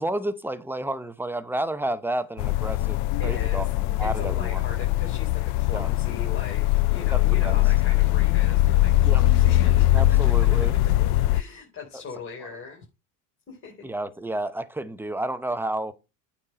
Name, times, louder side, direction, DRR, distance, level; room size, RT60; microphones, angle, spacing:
voice 1, 0.0-4.6 5.7-5.9 7.1-7.6 9.0-9.3 9.9-10.7 13.8-15.9, right 1 dB, 5° right, 0.7 m, -31 dB
sound 1, 2.4-11.4, left 16 dB, 60° left, 0.5 m, -21 dB
voice 2, 3.2-3.7 4.0-10.7 11.3-12.9 13.5-13.9, left 4 dB, 30° left, 3.4 m, -40 dB
8.8 x 4.2 x 5.2 m
hypercardioid pair, 90°, 41 cm